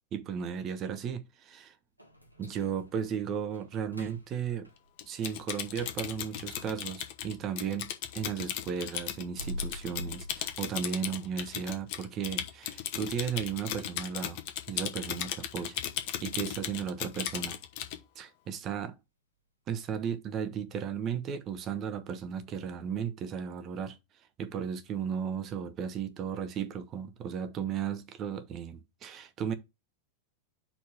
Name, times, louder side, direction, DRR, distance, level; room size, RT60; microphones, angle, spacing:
voice 1, 0.1-1.8 2.4-4.7 5.0-14.4 14.7-15.8 16.2-17.6 18.2-19.0 19.7-24.0 24.4-29.5, right 7 dB, 30° right, 1.1 m, -35 dB
sound 1, 2.0-7.9 8.3-11.1 11.5-11.6 12.1-12.2 12.7-13.0 13.4-13.5 14.0-14.1, left 1 dB, 90° right, 1.4 m, -46 dB
Typing, 5.0-18.0, left 11 dB, 45° left, 1.0 m, -37 dB
4.8 x 4.2 x 5.7 m
figure-of-eight pair, 90°, 0 cm